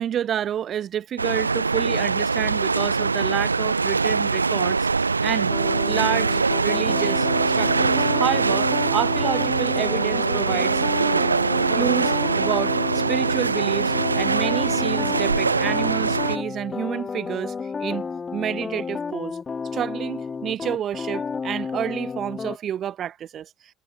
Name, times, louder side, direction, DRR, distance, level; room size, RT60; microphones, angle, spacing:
voice 1, 0.0-4.9 5.2-5.5 5.8-10.8 11.7-19.4 19.7-23.5, right 10 dB, 45° right, 1.5 m, -29 dB
sound 1, 1.2-16.4, right 4 dB, 90° right, 1.5 m, -23 dB
sound 2, 5.5-22.6, left 5 dB, 30° left, 3.0 m, -31 dB
figure-of-eight pair, 60°, 0 cm